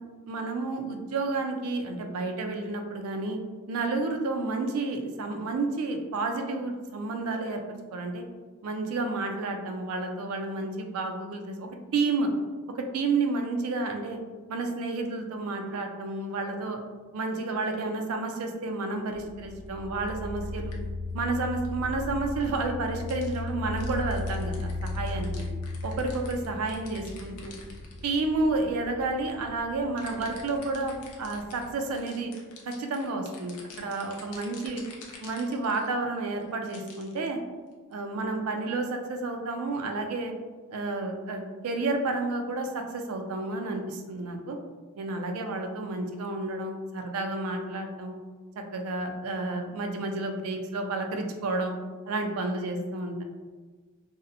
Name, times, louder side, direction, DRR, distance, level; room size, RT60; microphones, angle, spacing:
voice 1, 0.3-3.4 3.7-7.6 7.9-8.2 8.6-12.3 12.8-14.2 14.5-16.8 17.1-20.7 21.1-25.3 25.8-27.5 28.0-32.3 32.7-34.8 35.2-37.4 37.9-40.3 40.7-44.6 45.0-48.1 48.6-51.7 52.1-53.2, right 3 dB, 75° right, 4 dB, 0.4 m, -31 dB
sound 1, 19.1-31.9, left 2 dB, 20° left, 0.3 m, -36 dB
sound 2, 19.2-19.3 20.0-20.5 20.7-20.8 21.2-21.3 21.5-21.7 22.0-22.1 22.5-22.7 23.0-28.3 28.8-28.9 30.0-36.0 36.4-37.2 37.7-37.9, left 4 dB, 90° left, 0.5 m, -49 dB
2.6 x 2.0 x 2.5 m, 1.4 s
head